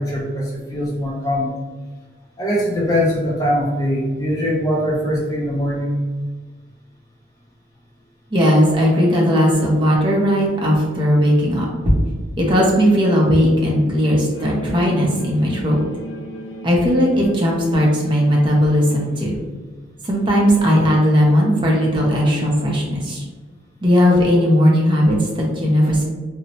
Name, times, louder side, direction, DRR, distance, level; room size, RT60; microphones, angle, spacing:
voice 1, 0.0-1.6 2.4-6.0, equal, 20° left, -4 dB, 0.6 m, -21 dB
voice 2, 8.3-11.7 12.4-15.8 16.6-19.3 20.0-23.2 23.8-26.0, equal, 25° right, -2 dB, 0.5 m, -17 dB
sound 1, 14.3-19.4, equal, 90° left, 0.7 m, -35 dB
2.8 x 2.1 x 2.8 m, 1.4 s
head